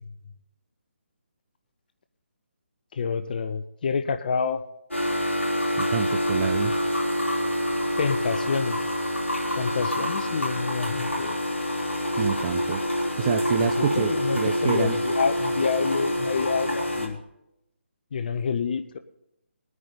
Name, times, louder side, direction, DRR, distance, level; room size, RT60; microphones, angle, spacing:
voice 1, 2.9-4.6 8.0-8.8 9.6-11.4 13.6-17.2 18.1-19.0, left 6 dB, 45° left, 10 dB, 0.7 m, -28 dB
sound 1, 4.9-17.1, equal, 80° left, 4.2 m, -26 dB
voice 2, 5.8-6.8 12.2-12.8 13.2-14.9, right 8 dB, 30° right, 7 dB, 0.5 m, -27 dB
20.0 x 9.6 x 4.0 m, 0.84 s
figure-of-eight pair, 145°, 7 cm